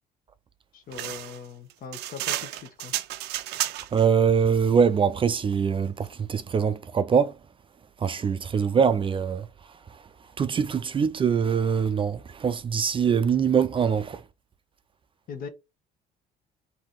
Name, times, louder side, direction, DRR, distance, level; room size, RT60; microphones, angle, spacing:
voice 1, 0.7-2.9 15.3-15.5, left 6 dB, 55° left, 1.1 m, -40 dB
sound 1, 0.9-4.1, right 14 dB, 85° right, 0.5 m, -32 dB
voice 2, 3.9-7.4 8.0-10.0 10.4-14.2, right 7 dB, 30° right, 0.4 m, -23 dB
3.7 x 2.8 x 4.6 m
cardioid pair, 110°, 17 cm